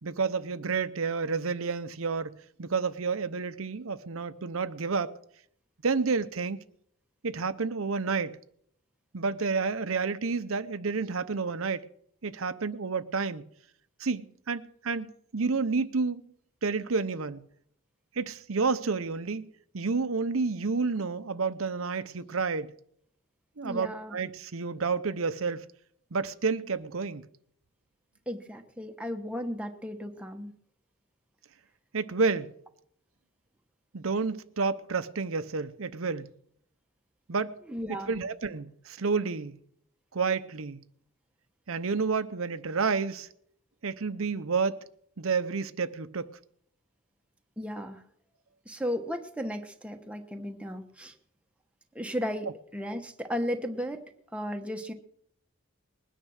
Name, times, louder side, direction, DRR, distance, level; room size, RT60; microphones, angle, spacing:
voice 1, 0.0-5.1 5.8-6.6 7.2-8.4 9.1-11.8 12.2-13.4 14.0-16.2 16.6-17.4 18.2-22.7 23.6-25.6 26.1-27.3 31.9-32.5 33.9-36.3 37.3-37.6 37.9-39.6 40.1-40.8 41.7-43.3 43.8-44.8 45.2-46.3, right 4 dB, 80° right, 0.8 m, -30 dB
voice 2, 23.6-24.1 28.3-30.5 37.7-38.1 47.6-48.0 48.7-51.1 51.9-54.0 54.3-54.9, equal, 5° right, 1.1 m, -35 dB
21.0 x 9.9 x 6.4 m
head